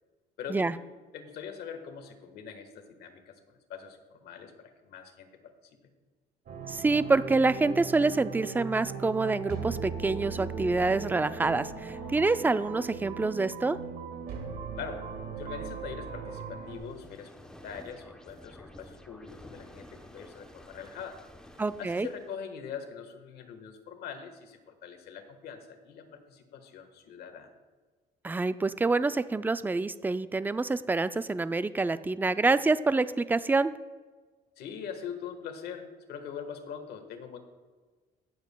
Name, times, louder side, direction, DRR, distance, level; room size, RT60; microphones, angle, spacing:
voice 1, 0.4-0.7 1.1-5.3 14.8-15.0 15.4-21.2 21.8-27.5 34.6-37.4, left 7 dB, 70° left, 6 dB, 1.4 m, -42 dB
sound 1, 6.5-16.8, right 5 dB, 60° right, 1.7 m, -38 dB
voice 2, 6.7-13.8 21.6-22.1 28.2-33.7, right 3 dB, 10° right, 14 dB, 0.3 m, -27 dB
sound 2, 16.7-22.4, left 1 dB, 5° left, 0.8 m, -51 dB
18.0 x 7.3 x 2.2 m, 1.4 s
cardioid pair, 110°, 17 cm